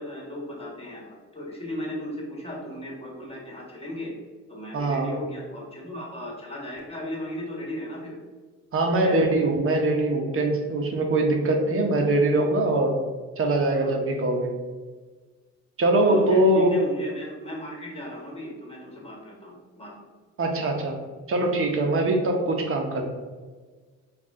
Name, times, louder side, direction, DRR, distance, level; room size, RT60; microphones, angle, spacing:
voice 1, 0.0-4.1 4.5-8.2 9.0-9.2 13.7-13.9 16.0-20.0, left 1 dB, 20° left, -2 dB, 1.4 m, -36 dB
voice 2, 4.7-5.1 8.7-12.9 13.4-14.5 15.8-16.7 20.4-21.0 21.3-23.0, right 2 dB, 45° right, 2 dB, 0.9 m, -22 dB
4.7 x 2.5 x 3.6 m, 1.4 s
cardioid pair, 90°, 30 cm